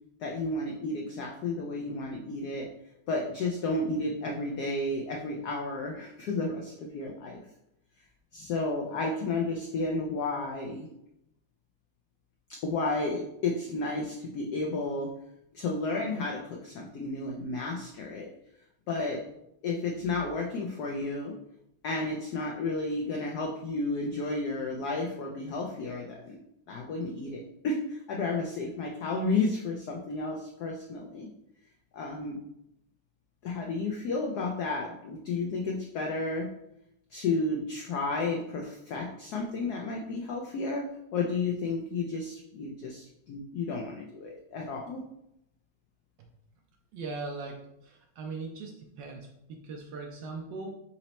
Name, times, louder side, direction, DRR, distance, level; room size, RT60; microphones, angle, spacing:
voice 1, 0.2-2.7 3.1-7.4 8.3-10.9 12.6-15.1 15.5-18.3 18.9-19.2 19.6-21.3 21.8-26.4 26.7-31.3 31.9-32.4 33.4-36.5 37.1-40.9 41.1-45.0, left 3 dB, 85° left, 0 dB, 0.8 m, -32 dB
voice 2, 46.9-50.8, right 3 dB, 75° right, 2 dB, 1.1 m, -40 dB
4.2 x 3.0 x 4.0 m, 0.81 s
omnidirectional pair, 2.4 m